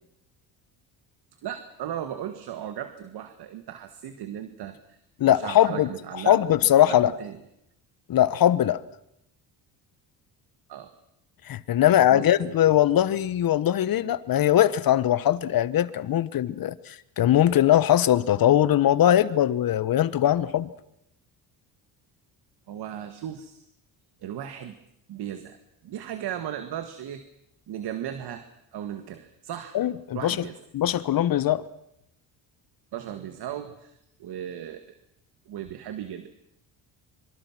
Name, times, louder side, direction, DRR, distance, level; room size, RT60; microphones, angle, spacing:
voice 1, 1.4-5.0 5.2-6.4 6.9-7.4 10.7-10.9 11.9-12.5 22.7-23.6 24.2-24.8 25.1-25.6 25.8-27.2 27.7-28.5 28.7-29.8 30.1-30.6 32.9-35.0 35.5-36.3, right 10 dB, 65° right, 9 dB, 1.9 m, -36 dB
voice 2, 5.2-5.9 6.3-7.1 8.1-8.8 11.5-20.7 29.7-30.5 30.7-31.6, left 12 dB, 55° left, 17 dB, 1.3 m, -21 dB
25.5 x 24.5 x 6.1 m, 0.79 s
cardioid pair, 90°, 43 cm